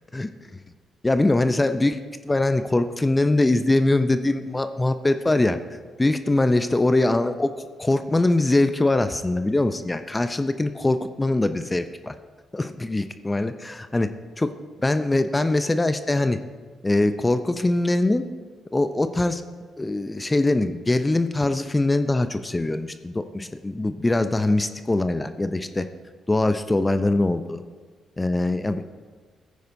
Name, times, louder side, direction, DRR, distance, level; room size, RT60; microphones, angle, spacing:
voice 1, 0.1-0.6 1.0-2.0 2.2-5.6 6.0-12.1 12.5-14.1 14.4-14.5 14.8-16.4 16.8-18.3 18.7-19.4 19.8-25.9 26.3-27.6 28.2-28.8, left 2 dB, 20° left, 10 dB, 0.6 m, -22 dB
14.5 x 9.3 x 2.7 m, 1.5 s
hypercardioid pair, 50°, 0 cm